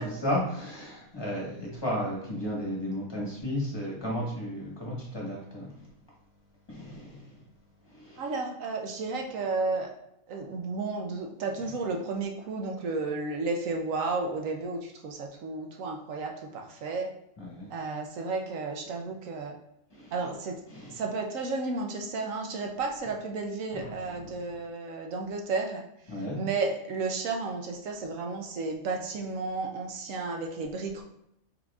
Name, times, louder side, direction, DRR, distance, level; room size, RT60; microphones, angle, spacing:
voice 1, 0.0-5.7 6.7-7.4 7.8-8.2 17.4-17.7 19.9-20.1 20.7-21.0 23.7-24.4 26.1-26.4, equal, 20° left, -5 dB, 1.2 m, -34 dB
voice 2, 8.2-9.9 10.3-17.1 17.7-19.6 20.1-20.6 20.9-25.8 26.3-31.0, right 3 dB, 70° right, 2 dB, 1.0 m, -32 dB
4.4 x 3.9 x 2.4 m, 0.77 s
omnidirectional pair, 1.5 m